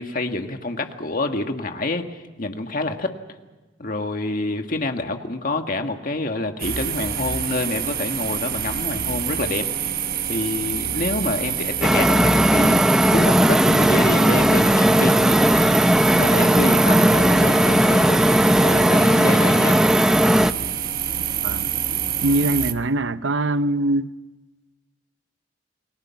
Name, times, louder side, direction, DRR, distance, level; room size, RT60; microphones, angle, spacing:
voice 1, 0.0-3.1 3.8-9.7 10.3-15.8 16.1-19.8, left 2 dB, 50° left, 1.8 m, -27 dB
sound 1, 6.6-22.7, right 9 dB, 55° right, 1.2 m, -26 dB
sound 2, 11.8-20.5, equal, 5° right, 0.7 m, -17 dB
voice 2, 22.2-24.1, right 2 dB, 90° right, 0.8 m, -22 dB
29.0 x 20.5 x 5.9 m
head